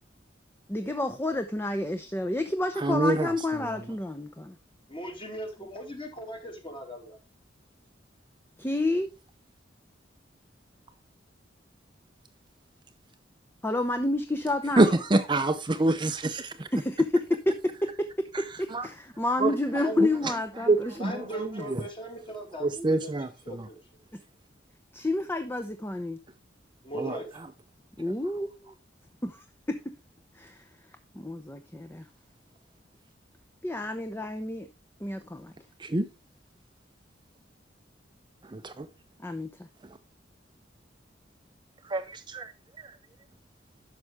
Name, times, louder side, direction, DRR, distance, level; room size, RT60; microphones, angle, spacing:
voice 1, 0.7-4.6 8.6-9.1 13.6-14.8 16.7-21.2 24.9-26.2 28.0-28.7 29.2-29.8 30.4-30.6 31.1-32.1 33.6-34.7 35.0-35.5 39.2-39.7, left 2 dB, 15° left, 0.7 m, -29 dB
voice 2, 2.8-3.3 3.6-3.8 14.8-16.7 18.7-18.9 19.4-19.5 20.6-21.8 22.6-23.7 26.9-27.2 35.8-36.1 41.9-42.5, right 2 dB, 25° right, 0.6 m, -26 dB
voice 3, 4.9-7.2 19.7-20.0 21.0-23.2 23.5-23.8 26.8-27.2, right 1 dB, 30° left, 2.9 m, -38 dB
11.0 x 6.6 x 3.4 m
head